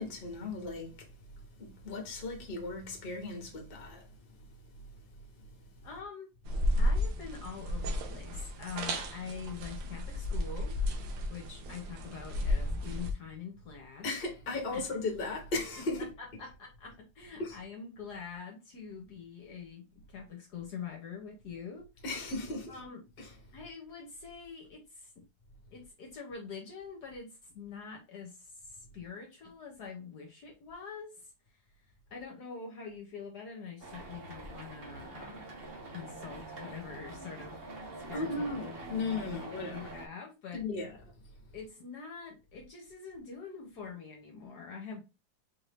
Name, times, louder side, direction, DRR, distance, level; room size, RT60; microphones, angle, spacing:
voice 1, 0.0-5.9 14.0-16.1 17.4-17.6 22.0-22.8 23.2-23.3 38.1-39.9 40.5-41.0, left 2 dB, 35° left, 1.2 m, -37 dB
voice 2, 5.8-6.3 6.8-10.8 11.3-14.1 14.7-15.0 16.2-21.9 22.7-23.0 23.5-25.2 25.7-31.3 32.1-35.5 35.9-37.6 38.1-38.4 39.2-40.6 41.5-45.0, left 6 dB, 65° left, 1.3 m, -45 dB
sound 1, 6.4-13.1, left 1 dB, 75° right, 1.4 m, -33 dB
sound 2, 33.8-40.1, right 2 dB, 40° right, 0.9 m, -45 dB
4.2 x 2.6 x 3.4 m
omnidirectional pair, 2.1 m